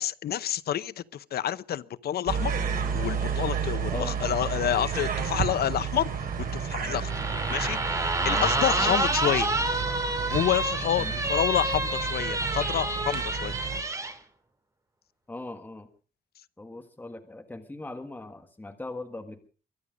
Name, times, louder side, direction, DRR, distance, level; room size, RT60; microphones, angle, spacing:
voice 1, 0.0-2.5 2.9-7.1 7.5-7.8 8.2-9.5 10.3-13.5, left 11 dB, 85° left, 0.7 m, -28 dB
sound 1, 2.3-13.8, right 6 dB, 70° right, 3.7 m, -31 dB
sound 2, 7.1-14.1, right 2 dB, 20° right, 2.1 m, -28 dB
voice 2, 15.3-15.9 16.6-19.5, left 2 dB, 10° left, 1.5 m, -39 dB
23.5 x 10.0 x 5.1 m
wide cardioid pair, 155°, 16 cm